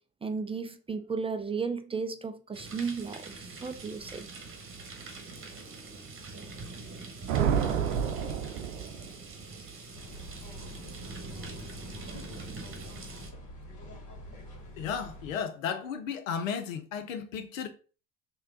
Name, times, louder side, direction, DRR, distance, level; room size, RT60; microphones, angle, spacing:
voice 1, 0.2-4.2, right 5 dB, 15° right, 0.4 m, -34 dB
sound 1, 2.5-13.3, right 3 dB, 35° right, 1.1 m, -44 dB
sound 2, 7.3-9.3, right 8 dB, 80° right, 0.7 m, -29 dB
sound 3, 9.9-15.3, left 1 dB, 45° left, 1.8 m, -46 dB
voice 2, 14.8-17.7, left 7 dB, 90° left, 0.6 m, -34 dB
3.2 x 2.8 x 3.7 m
hypercardioid pair, 65°, 39 cm